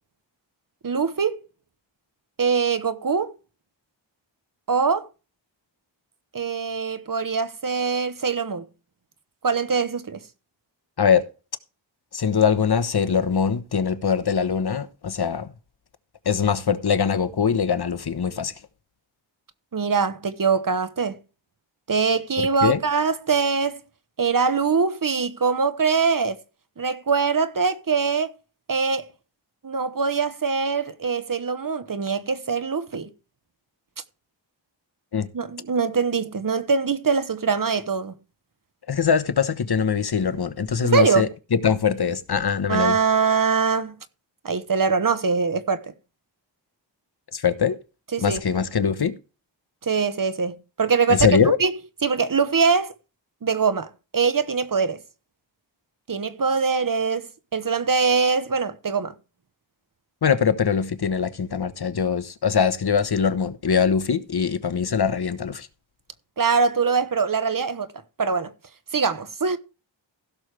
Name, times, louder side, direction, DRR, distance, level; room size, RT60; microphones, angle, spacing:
voice 1, 0.8-1.4 2.4-3.3 4.7-5.1 6.3-8.6 9.4-10.2 19.7-21.2 21.9-23.8 24.2-26.4 26.8-28.3 28.7-29.1 29.6-33.1 35.3-38.1 40.8-41.3 42.7-43.9 44.4-45.9 48.1-48.4 49.8-51.3 51.6-51.7 52.0-52.9 53.4-55.0 56.1-59.1 66.4-67.9 68.2-68.5 68.9-69.6, right 5 dB, 45° right, 1.1 m, -23 dB
voice 2, 11.0-11.3 12.1-15.5 16.2-18.5 22.6-22.8 35.1-35.3 38.9-43.0 47.3-47.8 48.2-49.2 51.1-51.6 60.2-65.7, left 6 dB, 55° left, 1.1 m, -22 dB
16.0 x 6.5 x 3.3 m
wide cardioid pair, 80°, 45 cm